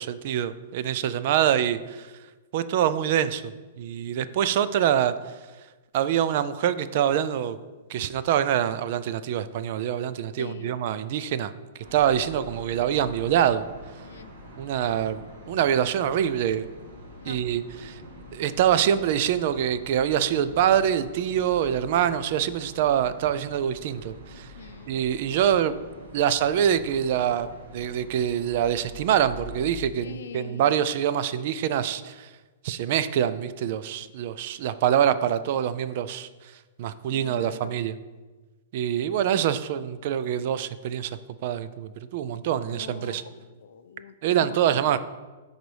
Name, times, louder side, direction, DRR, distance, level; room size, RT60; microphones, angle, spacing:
voice 1, 0.0-2.1 2.5-3.5 3.8-5.1 5.9-7.6 7.9-11.5 11.9-13.7 14.6-16.7 17.3-18.0 18.3-24.5 24.9-25.8 26.1-32.3 32.6-36.3 36.8-38.0 38.7-41.1 41.4-43.2 44.2-45.0, right 10 dB, 45° right, 13 dB, 0.3 m, -25 dB
voice 2, 10.4-10.8 14.0-14.3 17.2-17.4 24.6-25.0 30.0-30.7 37.1-37.8 42.6-45.0, left 7 dB, 80° left, 11 dB, 0.5 m, -43 dB
sound 1, 11.8-29.8, left 1 dB, 65° right, 1.6 m, -45 dB
10.5 x 4.0 x 3.3 m, 1.3 s
hypercardioid pair, 170°, 0 cm